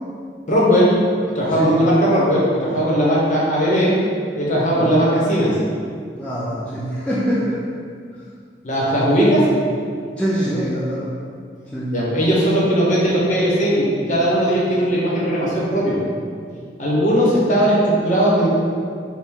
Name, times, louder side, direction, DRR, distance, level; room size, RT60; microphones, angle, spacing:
voice 1, 0.5-0.9 1.3-4.0 4.4-5.6 8.6-9.4 11.9-16.0 16.8-18.5, equal, 45° left, -6 dB, 0.9 m, -18 dB
voice 2, 6.2-7.6 10.2-11.1 11.7-12.0 16.2-16.4, equal, 5° left, -8 dB, 0.3 m, -24 dB
3.6 x 2.2 x 4.4 m, 2.1 s
head